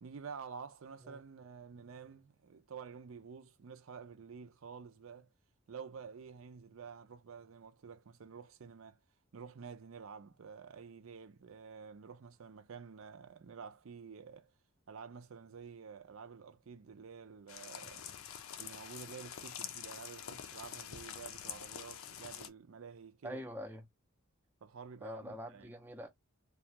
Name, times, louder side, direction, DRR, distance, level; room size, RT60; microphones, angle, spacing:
voice 1, 0.0-5.3 5.7-9.0 9.3-14.5 14.9-18.1 18.6-23.4 24.6-25.7, right 6 dB, 70° right, 0.5 m, -50 dB
sound 1, 17.5-22.5, left 9 dB, 75° left, 0.4 m, -46 dB
voice 2, 23.2-23.8 25.0-26.1, equal, 10° right, 0.4 m, -44 dB
2.4 x 2.3 x 2.8 m
head